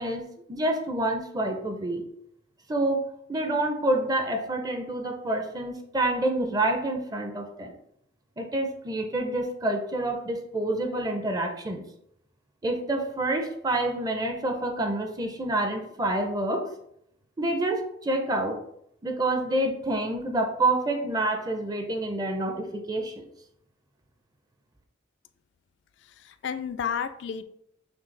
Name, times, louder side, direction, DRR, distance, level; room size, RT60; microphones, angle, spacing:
voice 1, 0.0-2.0 2.7-7.7 8.4-11.8 12.6-16.7 17.4-18.6 19.0-23.2, right 1 dB, 20° right, 4 dB, 0.5 m, -28 dB
voice 2, 26.0-27.4, left 7 dB, 70° left, 10 dB, 0.3 m, -32 dB
6.0 x 2.3 x 3.2 m, 0.74 s
head